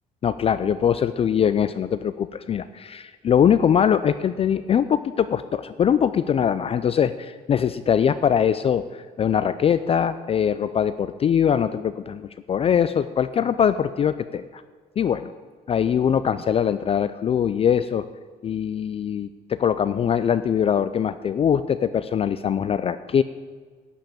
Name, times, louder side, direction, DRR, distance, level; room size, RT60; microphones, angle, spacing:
voice 1, 0.2-8.8 9.2-14.6 15.0-15.3 15.7-18.0 18.4-23.2, left 8 dB, 35° left, 13 dB, 0.4 m, -22 dB
11.5 x 5.5 x 8.8 m, 1.5 s
cardioid pair, 110°, 17 cm